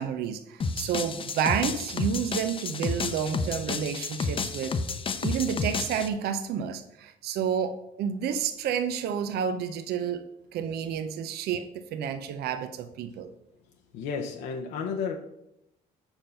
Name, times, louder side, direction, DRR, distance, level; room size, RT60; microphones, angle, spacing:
voice 1, 0.0-4.7 5.2-10.2 10.5-13.3, right 8 dB, 70° right, 9 dB, 0.6 m, -30 dB
sound 1, 0.6-6.1, left 4 dB, 30° left, 0.7 m, -31 dB
voice 2, 13.9-15.2, left 5 dB, 90° left, 2 dB, 0.8 m, -32 dB
7.2 x 5.3 x 5.7 m, 0.85 s
cardioid pair, 110°, 17 cm